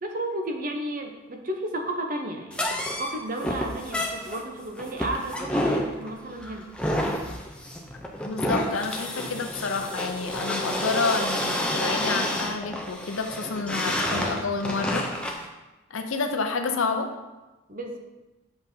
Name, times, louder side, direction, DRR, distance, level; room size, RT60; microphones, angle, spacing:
voice 1, 0.0-6.7 17.7-18.0, right 1 dB, 40° right, 3 dB, 0.7 m, -33 dB
sound 1, 2.5-15.5, left 1 dB, 5° left, 0.5 m, -29 dB
voice 2, 8.2-15.0 15.9-17.1, left 4 dB, 75° left, 5 dB, 0.6 m, -29 dB
8.0 x 5.3 x 2.7 m, 1.1 s
head